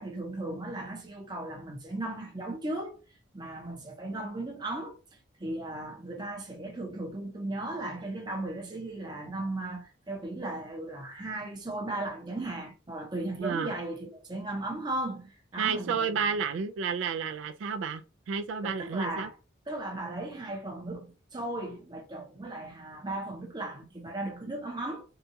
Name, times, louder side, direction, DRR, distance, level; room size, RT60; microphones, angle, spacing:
voice 1, 0.0-3.0 3.3-4.9 5.4-16.4 18.6-19.3 19.7-25.0, right 2 dB, 20° right, 0.6 m, -36 dB
voice 2, 13.4-13.7 15.6-19.3, right 6 dB, 85° right, 0.3 m, -31 dB
2.7 x 2.2 x 2.6 m
head